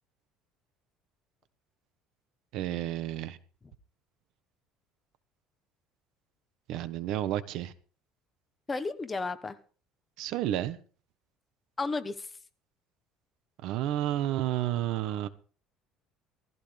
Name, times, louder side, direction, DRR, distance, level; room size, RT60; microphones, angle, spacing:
voice 1, 2.5-3.4 6.7-7.7 10.2-10.8 13.6-15.3, right 12 dB, 65° right, 13 dB, 1.3 m, -31 dB
voice 2, 8.7-9.6 11.8-12.3, left 3 dB, 15° left, 10 dB, 1.1 m, -33 dB
18.5 x 15.0 x 3.5 m, 0.40 s
cardioid pair, 155°, 0 cm